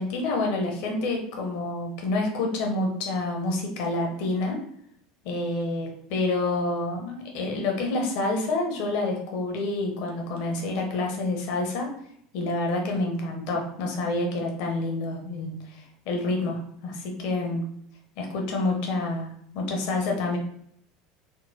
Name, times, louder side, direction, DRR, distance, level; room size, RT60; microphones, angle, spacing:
voice 1, 0.0-4.6 5.2-11.9 12.3-17.6 18.2-20.4, left 2 dB, 55° left, 1 dB, 0.7 m, -28 dB
3.6 x 2.1 x 2.7 m, 0.68 s
figure-of-eight pair, 70°, 0 cm